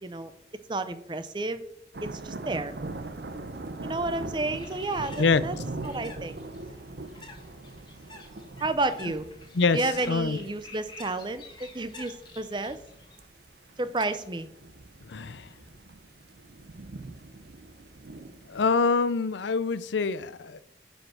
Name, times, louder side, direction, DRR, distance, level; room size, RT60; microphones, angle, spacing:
voice 1, 0.0-0.3 0.7-1.6 2.0-2.8 3.8-5.5 5.8-6.3 8.6-9.3 9.7-12.8 13.8-14.5, right 2 dB, 25° right, 0.6 m, -31 dB
sound 1, 1.9-18.7, right 2 dB, 65° right, 0.8 m, -42 dB
Bird, 4.4-13.2, left 3 dB, 25° left, 1.7 m, -50 dB
voice 2, 10.1-10.4 15.1-15.5 18.5-20.6, left 4 dB, 90° left, 0.5 m, -25 dB
10.0 x 5.4 x 6.1 m
head